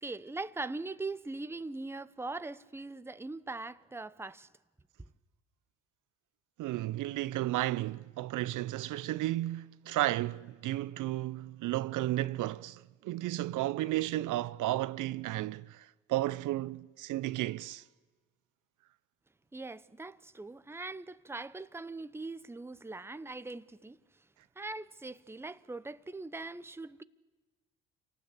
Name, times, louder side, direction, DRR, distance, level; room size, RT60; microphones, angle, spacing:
voice 1, 0.0-4.5 5.0-5.1 19.5-24.0 24.6-27.0, right 3 dB, 5° right, 0.8 m, -41 dB
voice 2, 6.6-17.8, right 16 dB, 60° right, 0.7 m, -33 dB
27.0 x 18.5 x 8.4 m
hypercardioid pair, 60°, 35 cm